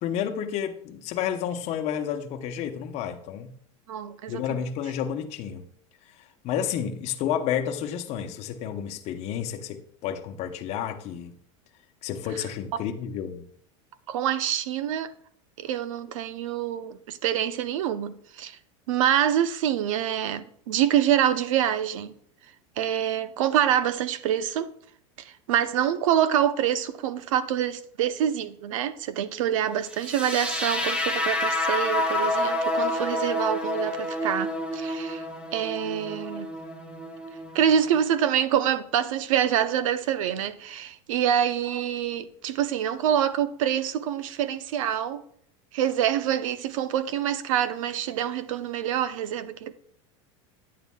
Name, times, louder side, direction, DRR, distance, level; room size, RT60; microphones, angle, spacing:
voice 1, 0.0-3.5 4.3-5.7 6.2-11.3 12.0-13.5, left 9 dB, 40° left, 0.9 m, -31 dB
voice 2, 3.9-4.4 14.1-15.1 15.6-18.6 18.9-22.1 22.8-24.7 25.2-35.2 35.5-36.5 37.5-45.2 45.7-49.7, right 10 dB, 80° right, 0.7 m, -26 dB
sound 1, 30.0-38.0, left 1 dB, 5° right, 1.3 m, -29 dB
9.4 x 9.1 x 2.3 m
supercardioid pair, 135°, 17 cm